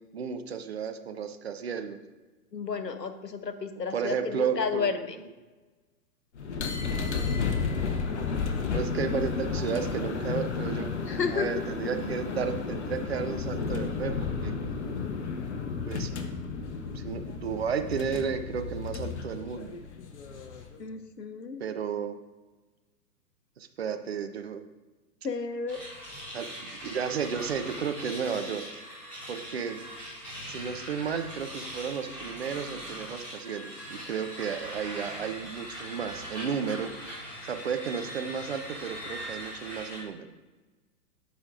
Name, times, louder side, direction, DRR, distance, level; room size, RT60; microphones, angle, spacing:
voice 1, 0.1-2.0 3.9-4.9 8.7-10.9 11.3-14.5 15.9-16.1 16.9-19.8 21.6-22.2 23.6-24.6 26.3-28.6 29.3-29.8 30.5-36.9 37.4-40.3, right 7 dB, 40° right, 8 dB, 0.5 m, -33 dB
voice 2, 2.5-5.2 11.1-11.6 20.8-21.6 25.2-25.8, left 5 dB, 85° left, 10 dB, 0.8 m, -32 dB
sound 1, 6.4-20.8, left 5 dB, 45° left, 0.8 m, -32 dB
sound 2, 25.7-40.0, equal, 5° left, 0.5 m, -41 dB
12.5 x 5.0 x 2.5 m, 1.2 s
figure-of-eight pair, 115°, 48 cm